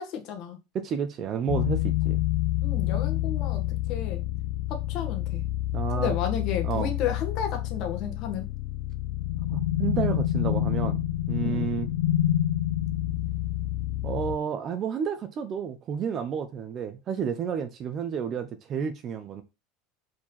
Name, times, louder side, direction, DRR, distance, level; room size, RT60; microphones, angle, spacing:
voice 1, 0.0-0.6 2.6-4.2 4.7-5.4 5.9-8.5 11.4-11.7, left 8 dB, 45° left, 1.6 m, -32 dB
voice 2, 0.7-2.2 5.7-6.2 6.6-6.9 9.5-11.0 11.3-11.9 14.0-19.4, right 7 dB, 35° right, 0.8 m, -31 dB
sound 1, 1.5-14.4, left 14 dB, 70° left, 0.4 m, -28 dB
4.9 x 4.6 x 5.6 m
supercardioid pair, 145°, 0 cm